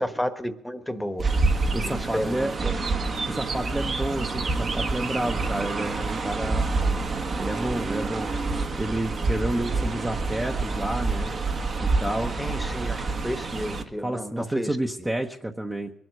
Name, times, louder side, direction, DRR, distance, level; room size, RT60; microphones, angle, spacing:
voice 1, 0.0-1.4 1.7-2.8 12.4-15.1, equal, 5° left, 9 dB, 1.2 m, -32 dB
Chirp tweet, 1.2-13.8, right 3 dB, 45° right, 1.4 m, -27 dB
voice 2, 1.7-2.5 3.3-6.6 7.4-11.3 11.8-12.4 14.0-15.9, right 1 dB, 15° right, 2 dB, 0.9 m, -30 dB
22.5 x 7.8 x 6.5 m, 0.85 s
cardioid pair, 90°, 0 cm